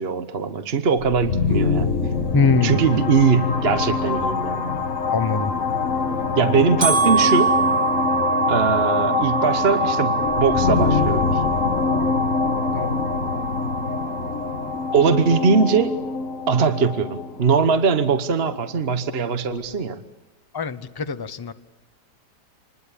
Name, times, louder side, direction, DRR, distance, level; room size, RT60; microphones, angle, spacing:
voice 1, 0.0-2.0 2.5-4.7 6.4-7.6 8.5-11.4 14.9-15.9 16.5-20.0, right 5 dB, 40° right, 10 dB, 1.2 m, -21 dB
sound 1, 1.0-18.7, left 4 dB, 45° left, 2.5 m, -24 dB
voice 2, 2.3-2.8 5.1-5.5 12.7-12.9 20.5-20.8 21.1-21.5, left 4 dB, 20° left, 11 dB, 0.7 m, -21 dB
sound 2, 5.6-15.5, right 6 dB, 70° right, 5.8 m, -25 dB
26.5 x 20.5 x 8.5 m, 1.0 s
omnidirectional pair, 1.8 m